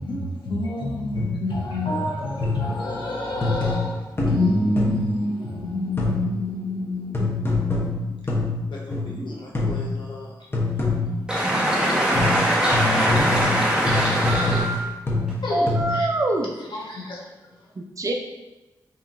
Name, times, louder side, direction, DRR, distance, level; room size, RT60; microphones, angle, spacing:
voice 1, 0.0-8.3 8.6-10.3 10.8-10.9 13.3-13.7 15.4-16.1 16.6-17.6, left 1 dB, 85° left, -3 dB, 1.0 m, -29 dB
sound 1, 1.1-1.5 2.4-2.9 3.4-5.2 6.0-6.4 7.1-9.2 9.5-10.0 10.5-11.3 12.1-16.1, left 2 dB, 30° left, 1.0 m, -25 dB
voice 2, 11.3-14.8, equal, 10° right, -5 dB, 1.3 m, -21 dB
voice 3, 14.2-14.8 15.5-16.5 17.8-18.1, right 2 dB, 45° right, 2 dB, 0.5 m, -25 dB
5.8 x 2.9 x 2.6 m, 1.1 s
wide cardioid pair, 85°, 8 cm